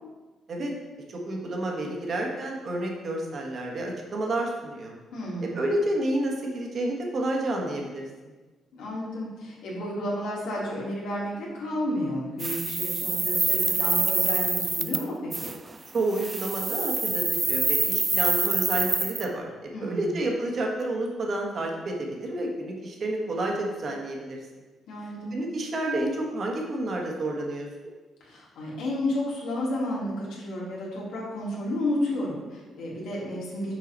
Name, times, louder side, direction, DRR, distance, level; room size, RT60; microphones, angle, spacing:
voice 1, 1.1-4.9 5.4-8.1 15.9-24.4 25.3-27.9, right 1 dB, 50° right, 0 dB, 1.4 m, -30 dB
voice 2, 5.1-5.6 8.7-15.5 19.7-20.1 24.9-25.3 28.2-33.7, left 1 dB, 85° left, -5 dB, 2.1 m, -31 dB
sound 1, 12.4-15.0 15.3-15.6 16.1-19.2, right 3 dB, 25° right, 0.4 m, -26 dB
6.4 x 4.7 x 4.0 m, 1.3 s
cardioid pair, 90°, 0 cm